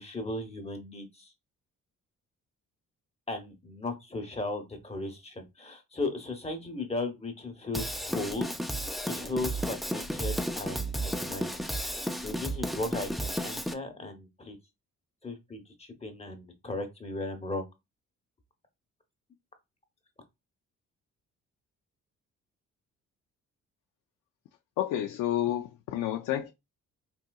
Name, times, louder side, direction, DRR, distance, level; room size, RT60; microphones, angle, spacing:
voice 1, 0.0-1.3 3.3-8.5 8.8-14.6 15.2-17.6, left 2 dB, 20° left, 0.8 m, -36 dB
Drum kit / Drum, 7.7-13.7, right 1 dB, ahead, 0.4 m, -33 dB
voice 2, 24.8-26.5, left 12 dB, 85° left, 0.5 m, -30 dB
3.6 x 2.8 x 2.3 m
cardioid pair, 90°, 30 cm